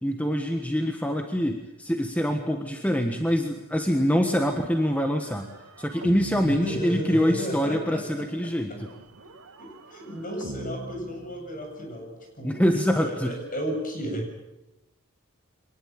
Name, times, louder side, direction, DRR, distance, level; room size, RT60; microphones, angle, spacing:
voice 1, 0.0-5.5 5.8-8.9 12.4-13.3, equal, 5° left, 4 dB, 1.5 m, -25 dB
sound 1, 4.4-7.7 8.8-12.0, right 1 dB, 80° right, 2.1 m, -43 dB
voice 2, 6.4-8.3 8.7-8.8 9.6-12.6 12.9-14.3, equal, 40° left, 3 dB, 7.7 m, -33 dB
24.5 x 20.0 x 8.8 m, 0.95 s
head